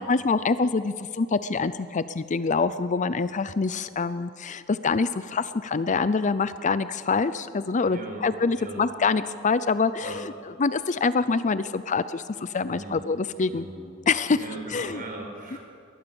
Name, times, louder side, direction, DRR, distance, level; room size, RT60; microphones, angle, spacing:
voice 1, 0.0-10.3 10.6-13.7 14.1-14.4 14.7-15.0, left 4 dB, 35° left, 14 dB, 0.5 m, -25 dB
voice 2, 7.9-8.2 8.6-8.8 10.0-10.2 12.6-13.0 13.5-13.9 14.3-15.6, right 1 dB, 45° right, 2 dB, 4.8 m, -38 dB
22.0 x 19.0 x 7.0 m, 2.3 s
head